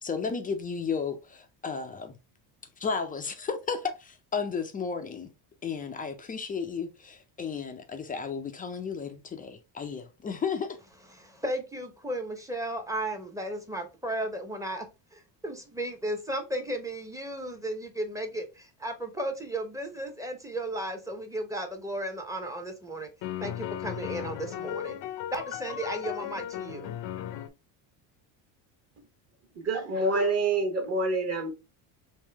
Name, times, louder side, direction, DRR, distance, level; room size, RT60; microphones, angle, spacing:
voice 1, 0.0-2.2 2.8-5.3 5.6-10.8, left 5 dB, 20° left, 0.3 m, -33 dB
voice 2, 11.1-14.9 15.1-23.1 23.4-25.0 25.3-27.0, right 1 dB, 5° right, 0.7 m, -34 dB
sound 1, 22.4-22.5 23.2-27.5, left 11 dB, 60° left, 0.6 m, -36 dB
voice 3, 29.6-31.5, right 2 dB, 35° right, 1.1 m, -27 dB
3.6 x 2.6 x 3.3 m
cardioid pair, 115°, 48 cm